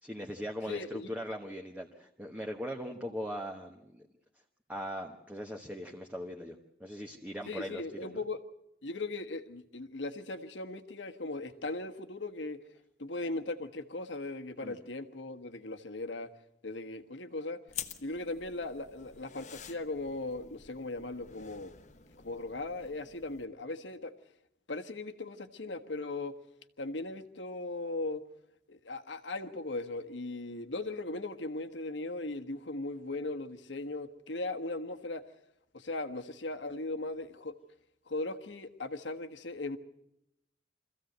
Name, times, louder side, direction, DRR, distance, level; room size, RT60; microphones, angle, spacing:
voice 1, 0.0-4.0 4.7-8.2 14.6-14.8, equal, 10° right, 1 dB, 1.2 m, -40 dB
voice 2, 0.7-1.1 7.4-8.4 8.8-12.6 13.0-16.3 16.6-17.6 18.0-21.7 22.2-24.1 24.7-26.3 26.8-28.2 28.7-35.2 35.7-37.6 38.1-39.8, left 2 dB, 80° left, 8 dB, 1.4 m, -38 dB
sound 1, 17.7-23.4, left 9 dB, 40° left, 1.0 m, -48 dB
25.0 x 15.0 x 8.0 m, 0.81 s
head